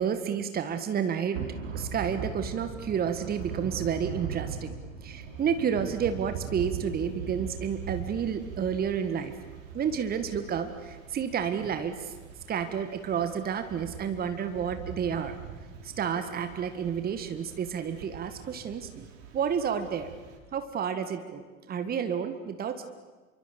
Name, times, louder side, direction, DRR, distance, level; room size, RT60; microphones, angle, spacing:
voice 1, 0.0-1.4 1.7-4.8 5.0-9.3 9.7-12.1 12.5-15.3 15.8-19.1 19.3-20.1 20.5-22.9, right 7 dB, 20° right, 9 dB, 1.7 m, -30 dB
Thunder / Rain, 1.3-20.4, right 6 dB, 50° right, 4.5 m, -41 dB
28.0 x 24.0 x 6.9 m, 1.4 s
figure-of-eight pair, 85°, 40 cm